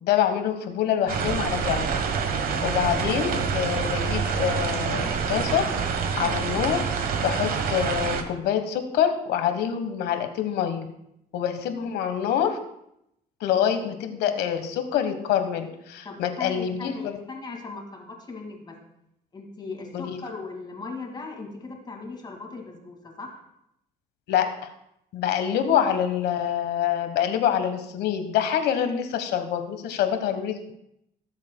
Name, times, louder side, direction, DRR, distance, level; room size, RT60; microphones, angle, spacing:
voice 1, 0.0-1.9 2.6-5.7 6.2-6.8 7.2-10.9 11.3-12.6 13.4-17.2 19.9-20.2 24.3-24.7 25.1-30.7, left 9 dB, 80° left, 8 dB, 1.2 m, -26 dB
sound 1, 1.1-8.2, right 6 dB, 60° right, 1.1 m, -27 dB
voice 2, 16.0-18.8 19.3-23.4, left 3 dB, 25° left, 2 dB, 2.1 m, -38 dB
17.5 x 7.3 x 2.2 m, 0.80 s
cardioid pair, 110°, 17 cm